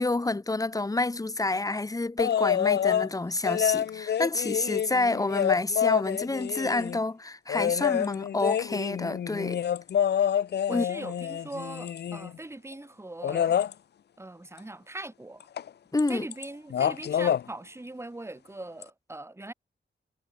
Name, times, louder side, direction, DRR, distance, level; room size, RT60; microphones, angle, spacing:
voice 1, 0.0-9.6 10.7-10.8 15.9-16.3, left 2 dB, 20° left, 1.2 m, -28 dB
sound 1, 2.2-3.1 3.4-7.0 7.5-12.4 13.2-13.7 15.6-15.7 16.0-16.4 16.7-17.4 18.8-18.9, left 9 dB, 60° left, 0.4 m, -27 dB
voice 2, 10.7-13.5 14.2-15.4 16.1-19.5, right 2 dB, 15° right, 1.8 m, -41 dB
wide cardioid pair, 155°, 20 cm